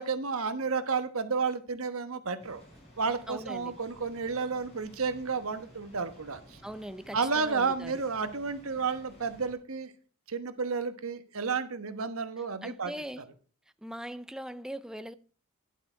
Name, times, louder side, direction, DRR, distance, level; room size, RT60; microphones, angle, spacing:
voice 1, 0.0-2.6 3.0-6.6 7.1-9.9 10.3-12.9, right 5 dB, 70° right, 1.2 m, -31 dB
sound 1, 2.4-9.5, left 1 dB, 30° left, 5.3 m, -54 dB
voice 2, 3.3-3.8 6.6-8.0 12.6-13.2 13.8-15.1, equal, 5° right, 0.5 m, -41 dB
11.5 x 7.9 x 4.5 m
head